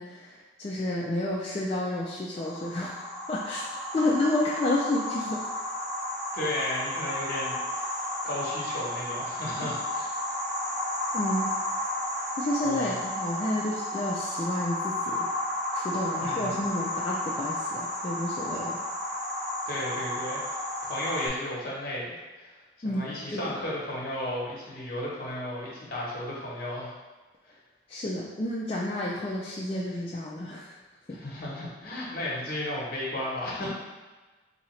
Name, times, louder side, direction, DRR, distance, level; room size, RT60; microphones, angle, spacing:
voice 1, 0.0-3.0 3.3-3.6 3.9-5.4 11.1-11.5 12.4-15.3 15.7-18.8 22.8-23.6 27.9-30.7 31.1-31.2, left 1 dB, 30° left, -5 dB, 0.3 m, -30 dB
sound 1, 2.4-21.3, left 1 dB, 35° right, 1.2 m, -33 dB
voice 2, 6.3-10.1 12.6-12.9 16.2-16.5 19.7-26.9 27.4-27.5 31.1-33.7, left 1 dB, 45° left, -5 dB, 1.0 m, -34 dB
4.0 x 2.8 x 3.1 m, 1.2 s
head